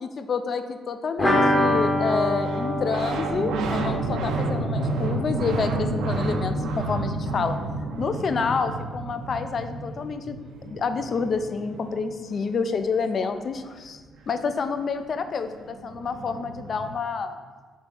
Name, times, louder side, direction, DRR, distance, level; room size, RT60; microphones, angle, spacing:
voice 1, 0.0-7.6 8.0-10.4 10.6-14.0 14.3-17.4, left 5 dB, 50° left, 9 dB, 0.3 m, -28 dB
sound 1, 1.2-6.8 7.0-7.1 7.4-7.5, left 1 dB, 20° left, 0.9 m, -26 dB
sound 2, 2.4-12.8 14.9-15.0 15.2-16.9, right 2 dB, 80° right, 0.5 m, -31 dB
3.6 x 2.9 x 4.2 m, 1.4 s
cardioid pair, 80°, 0 cm